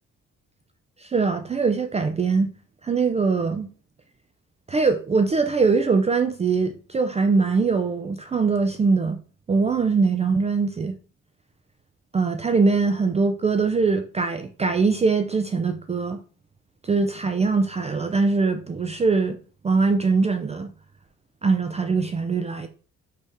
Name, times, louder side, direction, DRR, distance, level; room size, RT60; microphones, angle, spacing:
voice 1, 1.0-2.5 2.8-3.7 4.7-9.2 9.5-11.0 12.1-16.2 16.8-19.4 19.6-20.7 21.4-22.7, right 4 dB, 20° right, 7 dB, 0.4 m, -22 dB
4.9 x 3.4 x 2.7 m, 0.39 s
cardioid pair, 90°, 30 cm